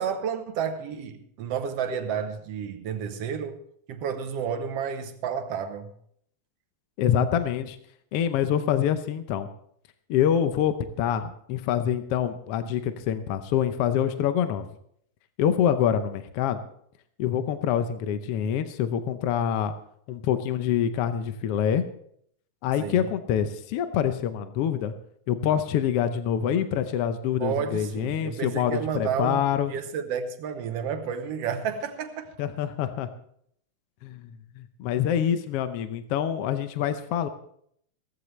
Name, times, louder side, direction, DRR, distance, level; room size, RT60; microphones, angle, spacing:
voice 1, 0.0-3.6 3.9-5.9 22.8-23.1 27.4-32.3, right 7 dB, 65° right, 1.7 m, -31 dB
voice 2, 7.0-7.8 8.1-9.5 10.1-14.7 15.4-16.6 17.2-19.7 20.1-21.8 22.6-24.9 25.3-29.7 32.4-33.1 34.0-34.3 34.6-37.3, left 9 dB, 75° left, 1.4 m, -26 dB
16.5 x 15.0 x 3.2 m
omnidirectional pair, 3.6 m